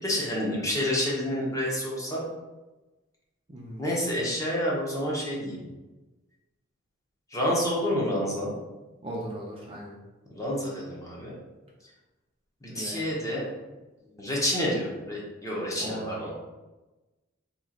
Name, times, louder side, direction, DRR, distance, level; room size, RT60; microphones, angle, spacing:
voice 1, 0.0-2.2 3.8-5.6 7.3-8.5 10.3-11.3 12.6-13.5 14.2-16.3, equal, 15° left, -5 dB, 0.8 m, -29 dB
voice 2, 3.5-3.9 9.0-10.0 12.7-13.1 15.8-16.3, right 1 dB, 25° right, -3 dB, 0.5 m, -37 dB
3.0 x 2.4 x 3.8 m, 1.1 s
head